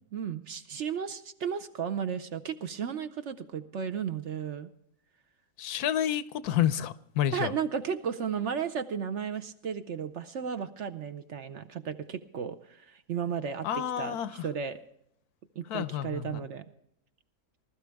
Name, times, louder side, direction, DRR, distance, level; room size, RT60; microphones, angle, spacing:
voice 1, 0.1-4.7 7.3-13.7 14.0-14.8 15.6-16.6, right 7 dB, 60° right, 9 dB, 0.9 m, -34 dB
voice 2, 5.6-7.5 13.6-14.5 15.7-16.4, left 10 dB, 80° left, 15 dB, 1.2 m, -29 dB
20.5 x 12.5 x 3.4 m, 0.72 s
omnidirectional pair, 1.6 m